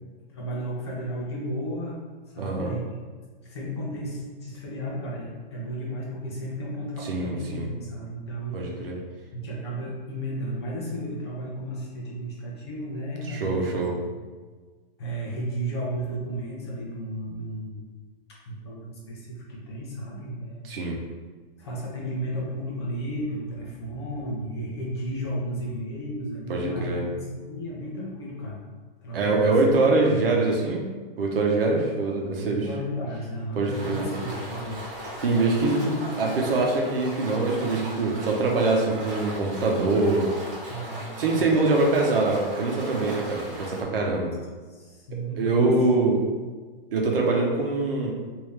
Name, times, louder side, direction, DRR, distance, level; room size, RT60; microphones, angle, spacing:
voice 1, 0.3-2.0 2.3-3.0 3.4-9.0 9.3-14.1 15.0-17.8 18.3-20.7 21.6-28.6 29.0-30.3 32.3-34.9 35.6-36.0 40.7-41.4 44.7-45.8, right 1 dB, 30° left, -4 dB, 0.5 m, -34 dB
voice 2, 2.4-2.7 7.0-7.7 8.5-9.0 13.3-13.9 20.6-21.0 26.5-27.1 29.1-30.8 31.2-32.7 33.5-34.1 35.2-35.8 36.2-40.3 41.2-44.3 45.4-46.2 46.9-48.1, right 3 dB, 70° right, -1 dB, 0.9 m, -24 dB
sound 1, 33.7-43.8, equal, 35° right, 1.1 m, -38 dB
3.3 x 2.7 x 3.2 m, 1.4 s
hypercardioid pair, 170°, 29 cm